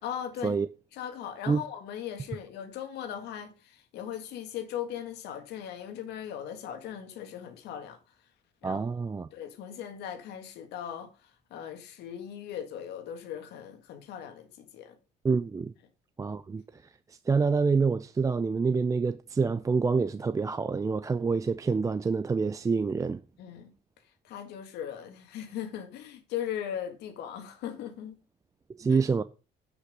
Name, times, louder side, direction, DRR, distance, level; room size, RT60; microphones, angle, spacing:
voice 1, 0.0-0.6 0.9-8.0 8.6-8.8 9.3-15.0 23.4-23.7 24.2-28.2 28.9-29.0, left 9 dB, 80° left, 1.8 m, -39 dB
voice 2, 8.6-9.3 15.2-15.7 16.2-16.6 17.3-23.2 28.8-29.2, right 4 dB, 20° right, 0.4 m, -27 dB
9.8 x 5.8 x 5.3 m
cardioid pair, 110°, 17 cm